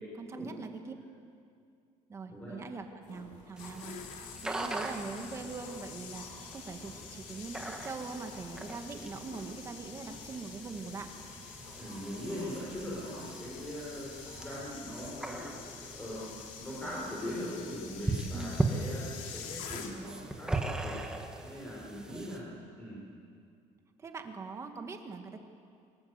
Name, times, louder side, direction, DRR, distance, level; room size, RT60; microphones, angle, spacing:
voice 1, 0.2-0.9 2.1-11.1 12.1-12.4 18.3-18.5 22.1-22.2 24.0-25.4, right 4 dB, 20° right, 5 dB, 1.7 m, -42 dB
sound 1, 3.0-16.4, left 2 dB, 70° left, 7.6 m, -54 dB
sound 2, 3.3-20.3 20.5-20.8, left 8 dB, 85° left, 2.7 m, -48 dB
sound 3, 3.6-22.4, right 2 dB, 5° right, 1.5 m, -40 dB
voice 2, 11.8-16.3 16.6-20.9 21.4-22.5 22.8-23.0, equal, 10° left, -7 dB, 5.3 m, -41 dB
24.5 x 22.0 x 8.2 m, 2.4 s
cardioid pair, 175°, 13 cm